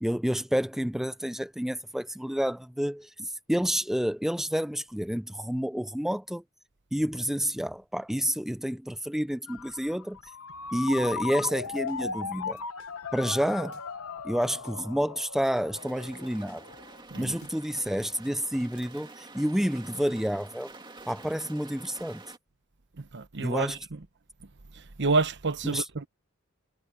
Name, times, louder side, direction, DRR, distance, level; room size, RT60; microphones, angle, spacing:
voice 1, 0.0-6.4 6.9-10.2 10.7-12.6 13.1-13.8 14.2-16.6 17.2-20.7 21.1-22.2 23.4-23.8 25.6-25.8, equal, ahead, 0.4 m, -29 dB
Ringtone, 9.5-17.0, left 5 dB, 80° left, 1.2 m, -37 dB
sound 1, 10.5-17.7, left 4 dB, 60° left, 4.1 m, -61 dB
sound 2, 15.7-22.4, right 3 dB, 20° right, 2.2 m, -48 dB
voice 2, 23.0-24.0 24.7-26.1, right 3 dB, 55° right, 1.0 m, -29 dB
head